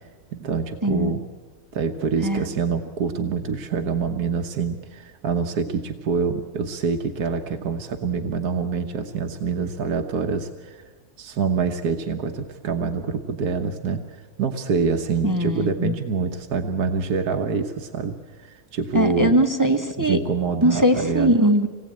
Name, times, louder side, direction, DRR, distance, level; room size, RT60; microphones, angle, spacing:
voice 1, 0.3-1.2 1.7-10.8 11.2-14.0 14.4-18.1 18.4-19.4 20.0-21.4, right 5 dB, 85° right, 5 dB, 1.6 m, -26 dB
voice 2, 15.2-16.0 18.9-20.2 20.6-21.7, right 1 dB, 15° right, 5 dB, 1.1 m, -20 dB
26.0 x 19.0 x 8.7 m, 1.4 s
omnidirectional pair, 1.6 m